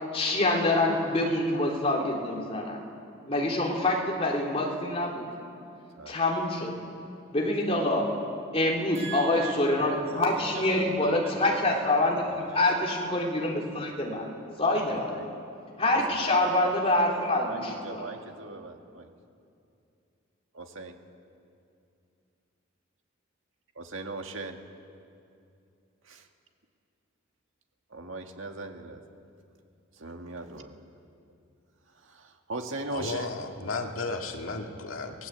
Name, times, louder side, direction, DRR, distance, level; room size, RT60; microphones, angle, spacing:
voice 1, 0.1-2.8 3.3-5.3 6.1-6.7 7.3-8.1 8.5-14.3 14.6-15.2 15.8-18.0, left 2 dB, 30° left, -2 dB, 3.4 m, -26 dB
voice 2, 9.0-11.7 12.3-13.0 14.9-15.3 16.1-16.3 17.4-19.1 20.5-21.0 23.8-24.6 26.1-26.3 27.9-29.0 30.0-30.8 32.0-33.3, right 3 dB, 70° right, 4 dB, 1.9 m, -40 dB
voice 3, 32.9-35.3, left 3 dB, 85° left, 3 dB, 2.1 m, -34 dB
27.5 x 18.5 x 8.2 m, 2.6 s
head